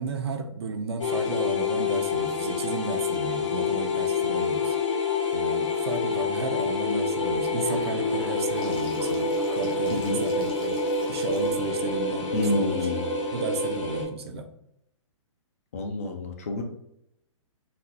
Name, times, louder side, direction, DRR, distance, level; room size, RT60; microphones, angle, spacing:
voice 1, 0.0-4.8 5.3-10.8 11.1-12.9 13.3-14.5, right 4 dB, 55° right, 7 dB, 0.4 m, -33 dB
sound 1, 1.0-14.0, left 4 dB, 70° left, 1.0 m, -27 dB
Gurgling / Sink (filling or washing) / Bathtub (filling or washing), 7.2-13.3, left 1 dB, 45° left, 1.0 m, -47 dB
voice 2, 9.9-10.2 12.3-13.1 15.7-16.6, left 2 dB, 30° left, 4 dB, 0.4 m, -28 dB
3.9 x 2.2 x 2.8 m, 0.78 s
hypercardioid pair, 170°, 16 cm